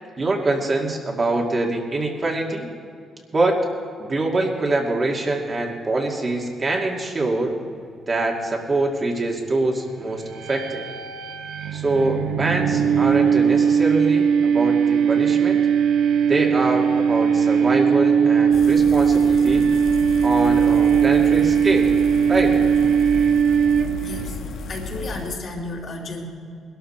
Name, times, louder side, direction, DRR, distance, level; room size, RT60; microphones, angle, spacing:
voice 1, 0.2-2.7 3.3-3.5 4.0-7.5 8.1-10.2 10.5-10.9 11.7-15.7 16.3-19.6 20.2-21.9 22.3-22.6, right 2 dB, 35° right, 0 dB, 2.2 m, -24 dB
sound 1, 10.2-24.3, right 7 dB, 80° right, 0.8 m, -19 dB
sound 2, 18.5-25.4, left 4 dB, 75° left, 1.3 m, -33 dB
voice 2, 24.0-24.4 24.7-26.2, left 2 dB, 55° left, -2 dB, 3.0 m, -32 dB
20.0 x 12.5 x 4.4 m, 2.4 s
cardioid pair, 90°, 0 cm